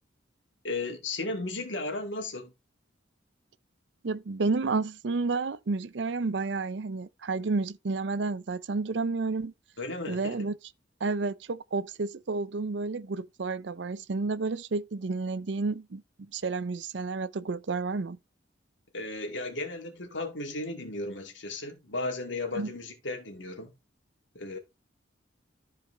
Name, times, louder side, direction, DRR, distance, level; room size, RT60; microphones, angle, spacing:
voice 1, 0.6-2.5 9.8-10.4 18.9-23.7 24.3-24.6, left 2 dB, 80° left, 2.4 m, -35 dB
voice 2, 4.0-9.5 10.1-10.5 11.0-18.2 22.5-22.7, right 3 dB, 70° right, 0.6 m, -31 dB
13.5 x 4.8 x 3.3 m
head